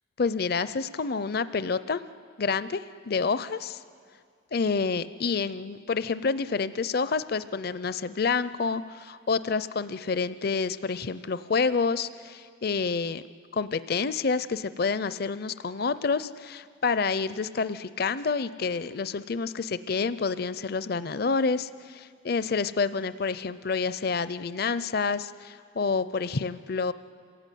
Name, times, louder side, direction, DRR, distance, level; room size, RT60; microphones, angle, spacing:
voice 1, 0.2-2.0 2.4-3.8 4.5-13.2 13.5-26.9, left 4 dB, 50° left, 15 dB, 0.5 m, -28 dB
26.5 x 17.0 x 9.2 m, 2.2 s
head